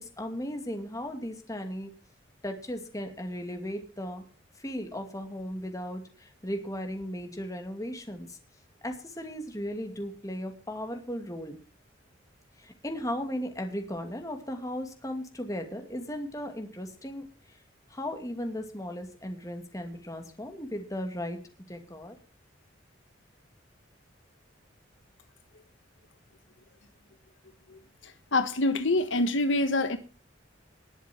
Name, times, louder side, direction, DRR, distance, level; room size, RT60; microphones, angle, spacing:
voice 1, 0.0-1.9 2.4-4.2 4.6-8.4 8.8-11.6 12.6-17.6 17.9-21.4 21.7-22.2, equal, 15° left, 2.5 m, -36 dB
voice 2, 28.3-30.0, left 2 dB, 80° left, 1.4 m, -25 dB
20.0 x 7.5 x 4.5 m
head